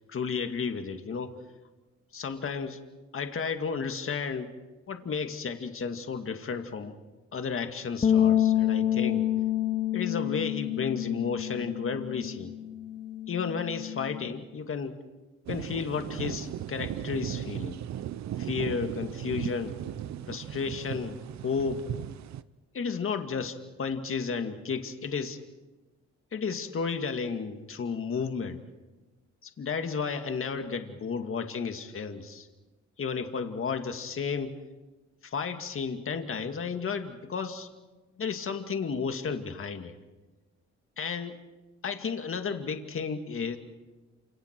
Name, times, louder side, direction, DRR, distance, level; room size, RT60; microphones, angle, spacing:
voice 1, 0.1-1.3 2.1-2.8 3.1-4.5 4.9-6.9 7.3-9.3 9.9-12.6 13.3-14.9 15.5-17.8 18.4-19.7 20.3-21.8 22.7-25.4 26.3-28.6 29.4-32.5 33.0-34.5 35.2-37.7 38.2-39.9 41.0-41.4 41.8-43.6, left 5 dB, 45° left, 6 dB, 2.1 m, -32 dB
sound 1, 8.0-14.3, left 11 dB, 25° left, 0.7 m, -28 dB
sound 2, 15.5-22.4, right 11 dB, 65° right, 0.8 m, -37 dB
28.5 x 26.5 x 4.6 m, 1.1 s
cardioid pair, 90°, 30 cm